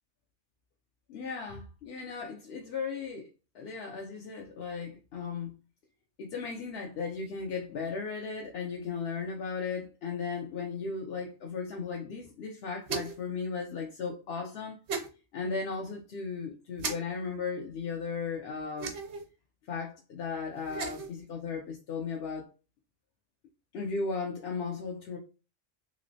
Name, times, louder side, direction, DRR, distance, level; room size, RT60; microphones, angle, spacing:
voice 1, 1.1-3.3 3.5-5.5 6.2-14.8 15.3-18.9 19.7-22.5 23.7-25.2, left 5 dB, 65° left, 0.8 m, -36 dB
sound 1, 12.8-13.3 14.9-15.1 16.8-16.9 18.8-19.2 20.6-21.1, right 5 dB, 65° right, 1.0 m, -35 dB
3.1 x 2.9 x 2.6 m
omnidirectional pair, 1.3 m